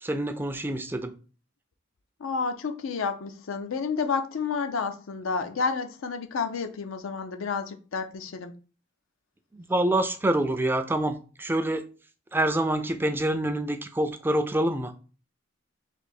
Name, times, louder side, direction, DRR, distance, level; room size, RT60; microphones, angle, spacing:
voice 1, 0.0-1.1 9.5-11.9 12.3-14.9, right 1 dB, 10° right, 0.3 m, -26 dB
voice 2, 2.2-8.5, left 5 dB, 80° left, 0.5 m, -30 dB
3.3 x 2.7 x 4.1 m
head